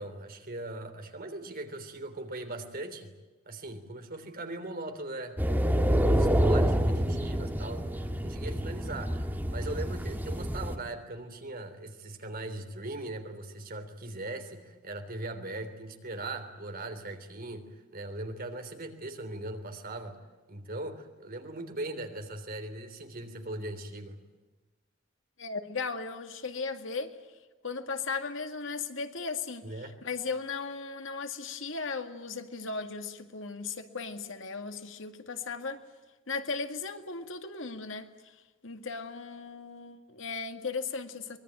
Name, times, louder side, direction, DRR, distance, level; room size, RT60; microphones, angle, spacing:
voice 1, 0.0-3.1 3.5-20.2 20.5-24.2 29.6-30.0, right 2 dB, 50° right, 6 dB, 3.2 m, -40 dB
sound 1, 5.4-10.8, equal, 10° right, 1.8 m, -27 dB
voice 2, 25.4-27.2 27.6-35.8 36.3-41.4, left 4 dB, 70° left, 7 dB, 2.0 m, -37 dB
24.0 x 22.0 x 9.1 m, 1.2 s
head